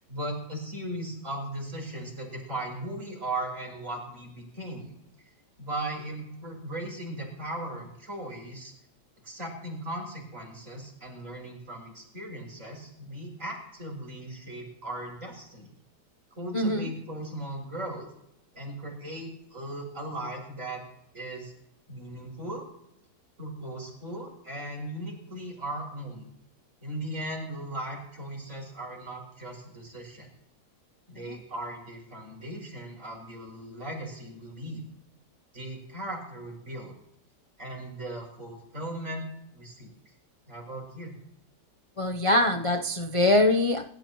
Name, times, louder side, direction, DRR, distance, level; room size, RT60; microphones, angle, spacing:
voice 1, 0.0-4.9 5.6-8.7 9.2-15.7 16.3-18.1 18.5-20.8 21.1-21.5 21.9-22.6 23.4-26.3 26.8-30.3 31.1-34.8 35.5-36.9 37.6-39.9 40.5-41.1, right 1 dB, 45° right, -1 dB, 6.8 m, -37 dB
voice 2, 16.5-16.9 42.0-43.8, left 1 dB, 35° left, 5 dB, 0.5 m, -23 dB
28.0 x 13.5 x 3.1 m, 0.77 s
omnidirectional pair, 1.8 m